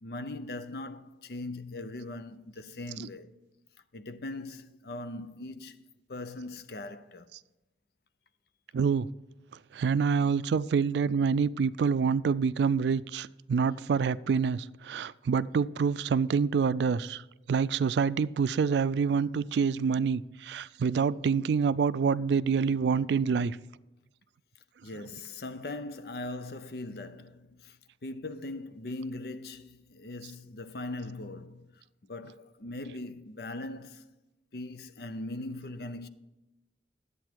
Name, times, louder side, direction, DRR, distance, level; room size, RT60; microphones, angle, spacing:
voice 1, 0.0-3.3 3.9-7.3 24.8-31.7 32.1-34.1 34.5-36.1, left 2 dB, 60° left, 0.6 m, -40 dB
voice 2, 8.7-9.1 9.7-17.2 17.5-23.6, right 6 dB, 75° right, 0.3 m, -27 dB
11.0 x 8.3 x 4.5 m
head